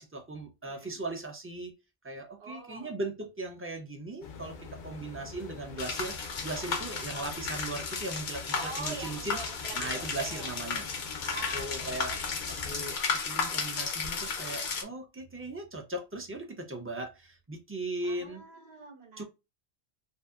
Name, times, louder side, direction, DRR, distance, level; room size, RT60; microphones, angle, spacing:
voice 1, 0.0-1.7 2.0-9.4 9.7-10.8 11.5-12.2 12.5-18.4 19.2-19.3, right 2 dB, 20° right, 0.4 m, -38 dB
voice 2, 0.6-1.0 2.4-2.9 6.9-7.3 8.5-10.5 11.2-12.0 18.0-19.2, right 3 dB, 80° right, 1.1 m, -44 dB
sound 1, 4.2-12.9, left 5 dB, 60° left, 0.6 m, -46 dB
sound 2, 5.8-14.8, left 5 dB, 80° left, 0.9 m, -34 dB
2.6 x 2.5 x 2.3 m
omnidirectional pair, 1.0 m